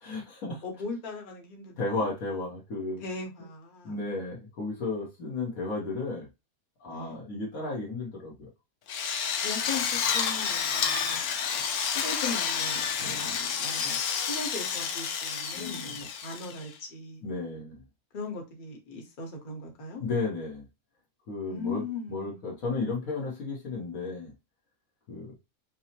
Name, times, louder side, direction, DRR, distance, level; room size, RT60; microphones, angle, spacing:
voice 1, 0.0-0.6 1.8-3.0 3.8-6.3 6.8-8.5 13.0-13.4 15.5-15.9 17.2-17.8 20.0-20.6 21.3-21.8 22.1-24.3 25.1-25.3, left 3 dB, 70° left, 1.5 m, -33 dB
voice 2, 0.6-2.1 3.0-4.0 6.9-7.2 9.4-17.2 18.1-20.0 21.5-22.4, left 3 dB, 40° left, 1.0 m, -39 dB
Drill, 8.9-16.7, left 7 dB, 90° left, 1.1 m, -30 dB
5.3 x 2.1 x 2.8 m
omnidirectional pair, 1.5 m